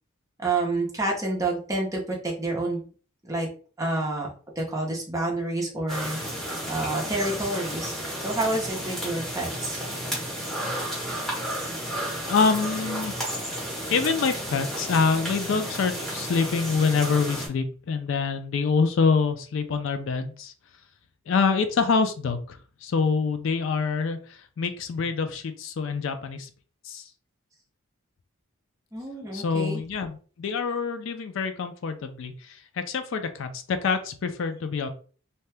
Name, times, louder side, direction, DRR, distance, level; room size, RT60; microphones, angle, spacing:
voice 1, 0.4-2.8 3.2-3.5 3.8-4.3 4.6-6.2 6.7-9.8 28.9-29.8, right 2 dB, 15° right, -2 dB, 0.7 m, -28 dB
sound 1, 5.9-17.5, equal, ahead, 1.0 m, -32 dB
voice 2, 12.3-13.1 13.9-20.5 21.3-26.5 26.8-27.1 29.3-34.9, left 5 dB, 60° left, 9 dB, 0.4 m, -26 dB
2.7 x 2.2 x 3.3 m, 0.40 s
head